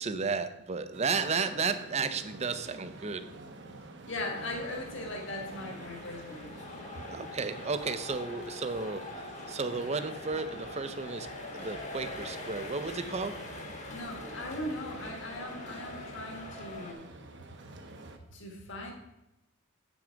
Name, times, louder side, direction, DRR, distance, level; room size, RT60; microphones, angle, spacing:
voice 1, 0.0-3.3 6.9-9.2 9.5-13.4, right 4 dB, 35° right, 11 dB, 0.5 m, -33 dB
sound 1, 0.9-18.2, right 2 dB, 60° right, 0.9 m, -49 dB
voice 2, 4.1-7.0 13.9-17.1 18.3-18.9, left 1 dB, 65° left, 1 dB, 1.7 m, -39 dB
sound 2, 4.3-16.9, left 2 dB, 35° left, 1.1 m, -44 dB
8.0 x 6.1 x 5.1 m, 0.91 s
head